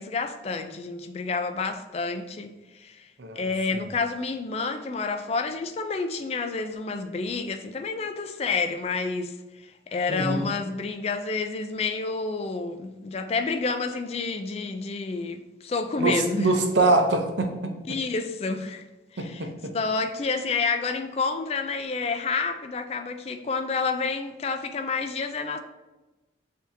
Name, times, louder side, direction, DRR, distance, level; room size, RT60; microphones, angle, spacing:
voice 1, 0.0-3.1 3.4-16.5 17.9-18.8 19.1-19.5 19.7-25.6, left 4 dB, 35° left, 7 dB, 0.3 m, -29 dB
voice 2, 3.2-3.5 10.1-10.5 16.0-18.0 19.2-19.8, right 2 dB, 85° right, 4 dB, 0.7 m, -24 dB
7.0 x 2.7 x 2.6 m, 1.1 s
head